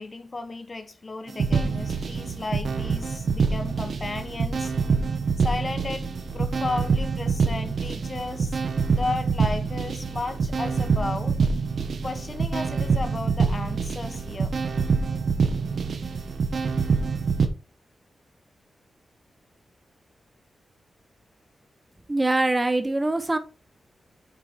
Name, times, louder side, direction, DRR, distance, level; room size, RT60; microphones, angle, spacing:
voice 1, 0.0-4.7 5.4-8.6 8.9-11.4 12.0-14.5, left 3 dB, 35° left, 1.2 m, -34 dB
sound 1, 1.3-17.5, right 5 dB, 70° right, 1.2 m, -26 dB
voice 2, 22.1-23.4, right 2 dB, 20° right, 1.1 m, -23 dB
6.9 x 4.6 x 5.1 m
wide cardioid pair, 95°, 0 cm